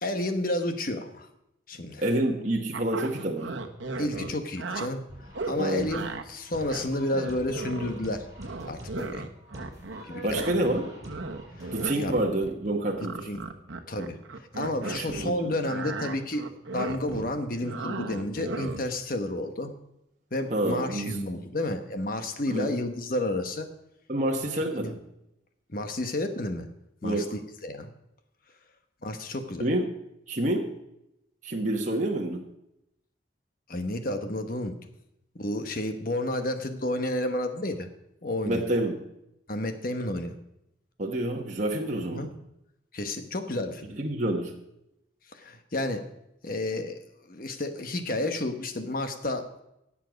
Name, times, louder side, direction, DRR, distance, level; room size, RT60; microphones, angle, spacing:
voice 1, 0.0-1.3 1.7-2.0 4.0-5.0 5.5-8.2 8.6-9.2 10.1-10.5 11.6-12.2 13.2-13.4 13.9-16.4 16.7-19.7 20.3-23.7 24.8-24.9 25.7-26.7 27.0-27.2 27.6-27.9 29.0-29.7 33.7-34.9 35.3-37.9 38.2-38.6 39.5-40.3 42.1-42.3 42.9-43.9 45.3-46.1 46.4-47.0 47.3-49.6, left 1 dB, 45° left, 7 dB, 1.2 m, -31 dB
voice 2, 2.0-3.6 5.6-5.9 10.2-10.9 11.7-13.3 14.9-15.5 20.5-21.2 22.5-22.7 24.1-25.0 27.0-27.3 29.6-29.9 30.3-30.7 31.4-32.4 38.5-39.0 41.0-42.3 43.9-44.5, right 1 dB, 40° right, 0 dB, 1.3 m, -28 dB
sound 1, 2.7-4.9 5.3-5.6 5.9-6.2 6.6-8.1 8.4-10.1 10.3-15.3 15.6-19.0, right 3 dB, 80° right, 1.2 m, -36 dB
sound 2, 5.1-11.8, equal, 20° right, 4.9 m, -45 dB
17.0 x 7.5 x 5.2 m, 0.84 s
head